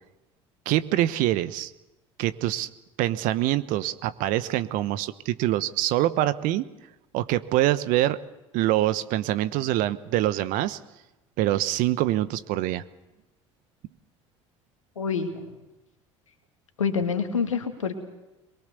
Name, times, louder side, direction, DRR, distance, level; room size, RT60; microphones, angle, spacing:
voice 1, 0.6-1.7 2.2-2.7 3.0-6.7 7.1-8.2 8.5-10.8 11.4-12.8, right 14 dB, 60° right, 14 dB, 1.1 m, -25 dB
voice 2, 15.0-15.4 16.8-17.9, left 6 dB, 85° left, 6 dB, 2.1 m, -26 dB
23.0 x 22.5 x 6.9 m, 0.98 s
figure-of-eight pair, 65°, 16 cm